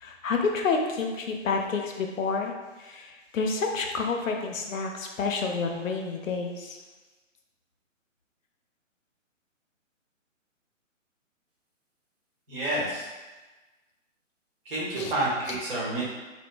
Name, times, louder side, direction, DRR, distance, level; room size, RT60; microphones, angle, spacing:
voice 1, 0.0-2.5 2.8-6.8 12.8-13.0 14.9-15.1 15.4-15.6, left 4 dB, 80° left, 3 dB, 0.5 m, -29 dB
voice 2, 12.5-13.0 14.7-16.0, right 1 dB, 45° right, -6 dB, 0.9 m, -29 dB
2.8 x 2.0 x 2.3 m, 1.2 s
figure-of-eight pair, 140°, 39 cm